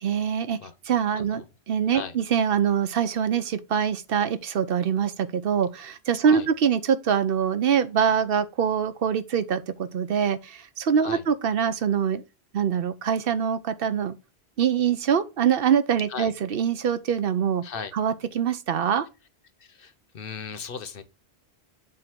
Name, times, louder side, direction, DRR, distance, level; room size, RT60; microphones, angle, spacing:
voice 1, 0.0-0.6 0.9-12.2 12.5-14.2 14.6-17.6 17.9-19.1, right 8 dB, 65° right, 0.8 m, -24 dB
voice 2, 17.6-17.9 19.6-21.0, left 6 dB, 60° left, 0.9 m, -37 dB
7.5 x 2.6 x 5.8 m
omnidirectional pair, 1.1 m